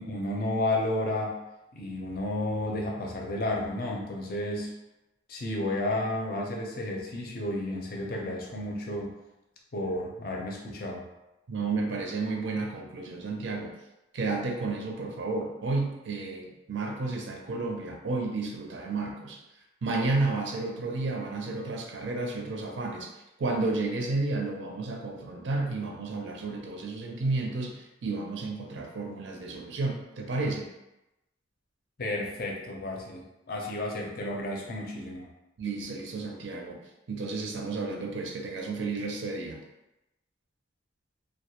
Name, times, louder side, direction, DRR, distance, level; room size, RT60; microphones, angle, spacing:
voice 1, 0.0-1.4 1.7-4.7 5.3-9.1 9.7-11.1 32.0-35.3, left 1 dB, 50° left, -1 dB, 0.5 m, -32 dB
voice 2, 11.5-13.7 14.1-19.4 19.8-23.1 23.4-30.7 35.6-36.8 37.1-39.6, right 3 dB, 75° right, 0 dB, 0.5 m, -32 dB
2.3 x 2.1 x 2.8 m, 0.95 s
head